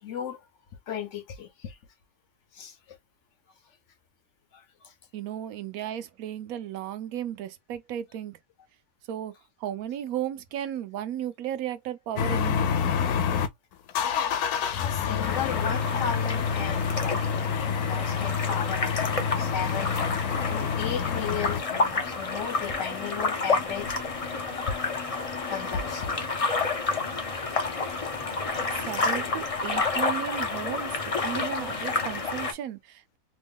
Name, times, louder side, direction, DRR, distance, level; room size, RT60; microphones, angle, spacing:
voice 1, 0.0-0.5 0.9-1.8 2.5-2.8 4.5-4.9 14.5-24.4 25.5-26.4, left 7 dB, 60° left, 0.9 m, -36 dB
voice 2, 5.1-8.4 9.1-9.3 9.6-12.8 28.7-31.0 31.2-33.2, right 10 dB, 75° right, 1.0 m, -34 dB
sound 1, 12.2-13.5 13.9-21.6, left 7 dB, 85° left, 1.1 m, -28 dB
sound 2, 15.2-32.5, left 3 dB, 40° left, 0.5 m, -30 dB
3.1 x 2.3 x 3.4 m
omnidirectional pair, 1.6 m